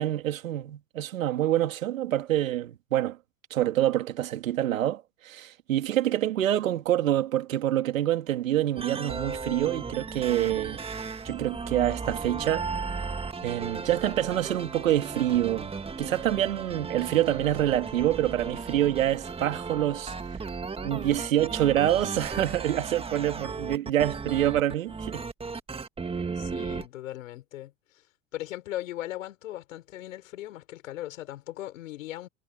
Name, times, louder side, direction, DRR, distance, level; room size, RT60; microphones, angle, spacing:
voice 1, 0.0-3.2 3.5-10.8 11.2-12.7 13.4-15.7 16.0-20.1 20.8-25.2, right 12 dB, 85° right, 2.7 m, -26 dB
sound 1, 8.8-26.9, right 4 dB, 15° right, 1.8 m, -36 dB
voice 2, 26.4-28.0 28.3-32.3, left 14 dB, 80° left, 5.6 m, -38 dB
hypercardioid pair, 105°, 39 cm